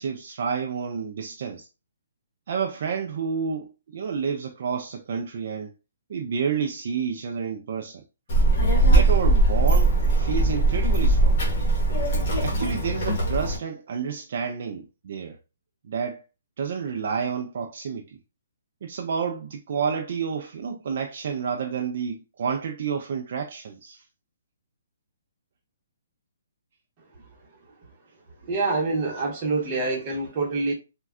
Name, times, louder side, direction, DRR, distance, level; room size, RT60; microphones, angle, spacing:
voice 1, 0.0-1.7 2.5-5.7 6.1-8.0 8.9-11.4 12.4-15.4 15.8-16.2 16.6-18.2 18.8-24.0, right 6 dB, 50° right, 0.3 m, -30 dB
Child speech kid speaking, 8.3-13.6, right 2 dB, 40° left, 1.2 m, -20 dB
voice 2, 28.4-30.7, right 3 dB, 25° right, 0.9 m, -26 dB
3.3 x 2.2 x 2.4 m
hypercardioid pair, 165°, 0 cm